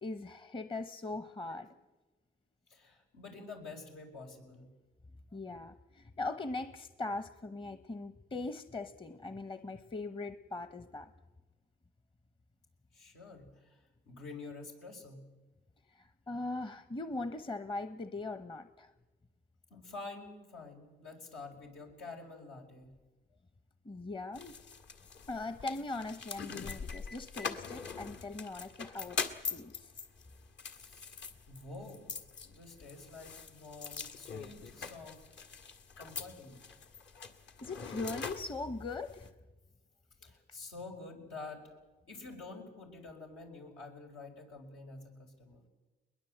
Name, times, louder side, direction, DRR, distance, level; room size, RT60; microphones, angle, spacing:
voice 1, 0.0-1.7 5.3-11.1 15.9-18.9 23.8-24.5 25.3-29.2 29.5-29.9 37.6-39.3, left 2 dB, 25° left, 11 dB, 0.9 m, -40 dB
voice 2, 2.7-4.7 12.9-15.2 19.7-22.9 30.7-31.1 31.5-32.1 32.4-35.2 36.0-36.6 40.2-41.8 42.1-45.6, left 3 dB, 90° left, 1 dB, 5.0 m, -48 dB
sound 1, 24.3-39.3, left 5 dB, 65° left, 1.9 m, -43 dB
21.5 x 20.5 x 7.9 m, 1.2 s
cardioid pair, 90°, 20 cm